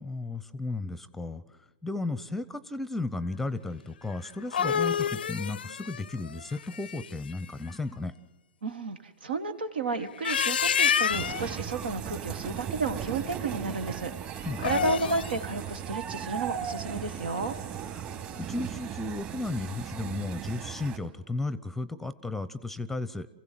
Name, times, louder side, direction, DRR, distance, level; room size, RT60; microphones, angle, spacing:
voice 1, 0.0-1.4 1.8-8.1 14.4-14.7 17.9-18.1 18.3-23.3, left 2 dB, 5° left, 16 dB, 0.8 m, -34 dB
sound 1, 4.2-7.3 10.0-11.5 14.5-15.4, left 8 dB, 75° left, 0.6 m, -28 dB
voice 2, 8.6-17.6, right 3 dB, 75° right, 9 dB, 1.8 m, -32 dB
sound 2, 11.1-21.0, right 9 dB, 35° right, 2.7 m, -37 dB
28.0 x 16.0 x 7.6 m, 1.2 s
hypercardioid pair, 115°, 5 cm